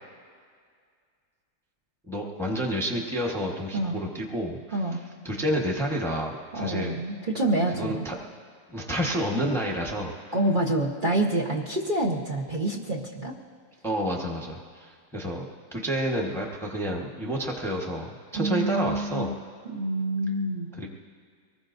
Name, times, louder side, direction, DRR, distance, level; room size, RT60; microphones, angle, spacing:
voice 1, 2.1-4.8 5.2-7.0 7.7-8.1 8.7-10.3 13.8-15.5 15.7-19.3 20.8-20.9, equal, ahead, -1 dB, 1.1 m, -29 dB
voice 2, 6.5-8.0 10.3-13.3 18.4-19.3 19.7-20.7, right 1 dB, 35° right, -2 dB, 1.2 m, -27 dB
24.0 x 20.0 x 2.7 m, 2.1 s
omnidirectional pair, 1.7 m